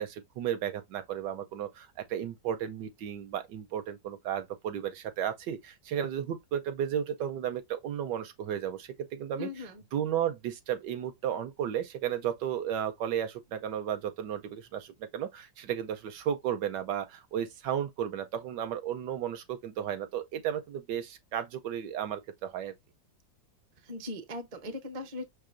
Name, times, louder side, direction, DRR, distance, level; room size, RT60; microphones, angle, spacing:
voice 1, 0.0-9.5 9.9-22.7, right 9 dB, 75° right, 1.2 m, -34 dB
voice 2, 9.4-9.8 23.8-25.2, left 2 dB, 35° right, 0.6 m, -39 dB
5.7 x 3.3 x 2.5 m
omnidirectional pair, 2.0 m